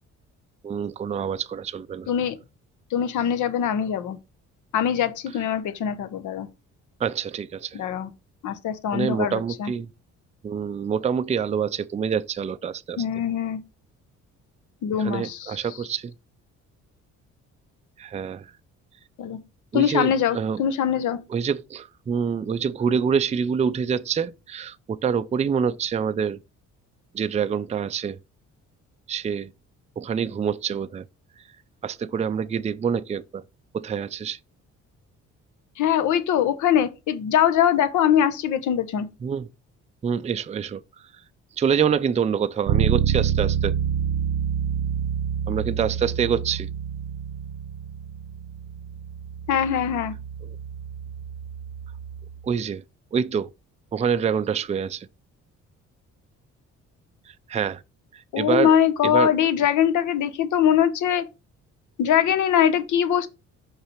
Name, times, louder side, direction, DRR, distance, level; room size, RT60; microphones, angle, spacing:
voice 1, 0.6-2.1 7.0-7.8 8.9-9.9 10.4-13.0 15.0-16.1 18.0-18.5 19.7-20.6 21.3-26.4 27.1-28.2 29.1-29.5 30.0-31.0 31.8-33.4 33.7-34.4 39.2-39.5 40.0-40.8 41.6-43.7 45.5-46.7 52.4-52.8 53.1-53.5 53.9-55.1 57.5-57.8 58.1-58.7 59.0-59.3, right 7 dB, 25° right, 0.4 m, -26 dB
voice 2, 2.9-4.2 4.7-6.5 7.7-8.1 8.4-9.7 13.0-13.6 14.8-15.7 19.2-19.4 19.7-21.2 35.8-39.1 49.5-50.1 58.3-61.3 62.0-63.3, left 9 dB, 75° left, 0.9 m, -22 dB
Bass guitar, 42.7-52.4, right 8 dB, 75° right, 0.6 m, -28 dB
5.7 x 3.3 x 5.7 m
cardioid pair, 90°, 30 cm